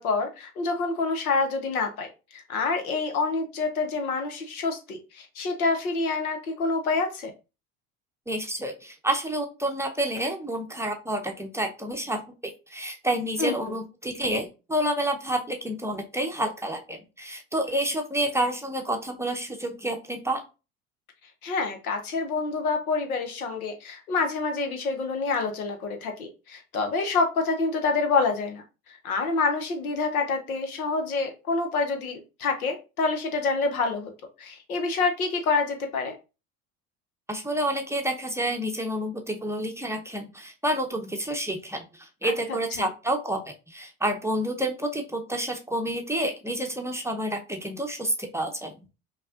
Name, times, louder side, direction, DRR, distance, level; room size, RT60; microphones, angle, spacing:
voice 1, 0.0-7.3 13.4-13.8 21.4-28.6 28.9-34.1 34.4-36.2 42.2-42.9, left 4 dB, 85° left, 5 dB, 0.9 m, -27 dB
voice 2, 8.3-12.2 12.7-20.4 37.3-43.4 43.7-48.9, right 1 dB, 5° right, 2 dB, 0.6 m, -29 dB
5.4 x 2.3 x 2.4 m, 0.30 s
hypercardioid pair, 70°, 42 cm